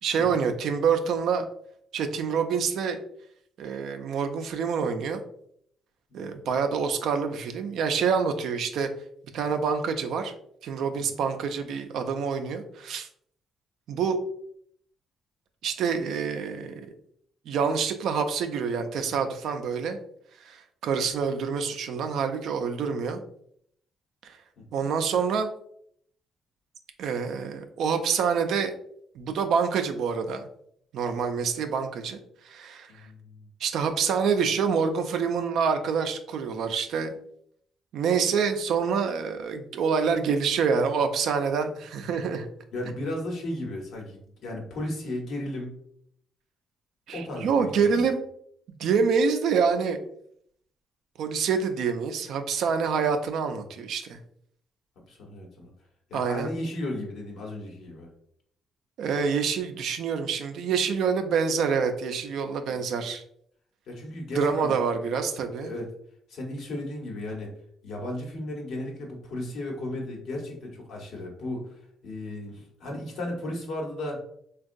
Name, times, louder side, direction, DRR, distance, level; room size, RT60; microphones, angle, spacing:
voice 1, 0.0-1.4 1.9-3.0 3.6-5.2 6.1-8.9 9.3-10.3 10.6-13.1 13.9-14.2 15.6-16.8 17.5-20.0 20.4-23.2 24.2-24.4 24.7-25.5 27.0-28.7 29.2-30.5 30.9-32.2 32.4-32.9 33.6-37.2 37.9-42.5 47.1-48.2 48.8-50.0 51.2-54.2 56.1-56.5 59.0-63.2 64.4-65.7, right 6 dB, 75° right, 7 dB, 0.4 m, -26 dB
voice 2, 6.1-6.5 11.1-11.2 24.6-24.9 32.9-33.5 42.7-45.7 47.1-48.0 55.1-55.7 56.1-58.1 62.6-62.8 63.9-64.7 65.6-65.9 66.3-67.5 67.8-74.2, left 1 dB, 75° left, 0 dB, 1.0 m, -35 dB
3.6 x 2.3 x 2.5 m, 0.68 s
cardioid pair, 90°, 0 cm